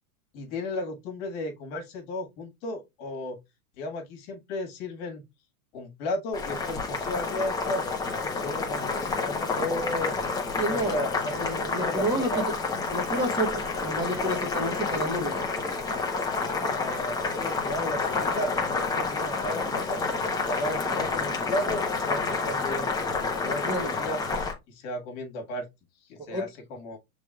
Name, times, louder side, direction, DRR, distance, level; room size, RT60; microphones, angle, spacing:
voice 1, 0.3-3.4 3.8-5.2 5.7-10.1 10.7-11.3 11.6-12.4 16.2-20.0 20.5-24.2 24.7-25.6 26.1-27.0, left 1 dB, 45° left, 1.7 m, -34 dB
Boiling, 6.3-24.5, left 4 dB, 10° left, 0.9 m, -29 dB
voice 2, 10.6-12.6 12.9-15.4 23.6-23.9 26.3-26.5, right 1 dB, 10° right, 1.3 m, -30 dB
6.0 x 3.4 x 2.3 m
hypercardioid pair, 120°, 44 cm